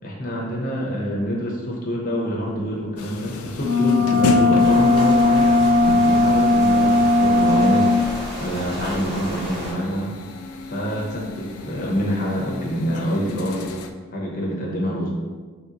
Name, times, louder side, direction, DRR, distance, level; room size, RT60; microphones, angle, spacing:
voice 1, 0.0-5.5 5.8-7.9 8.4-10.1 10.7-13.6 14.1-15.1, equal, 40° left, -3 dB, 0.8 m, -26 dB
sound 1, 3.0-13.9, left 2 dB, 90° left, 0.4 m, -32 dB
sound 2, 3.6-8.0, left 2 dB, 80° right, 0.7 m, -17 dB
sound 3, 4.6-9.7, equal, 50° right, 1.4 m, -32 dB
4.3 x 3.2 x 2.5 m, 1.4 s
head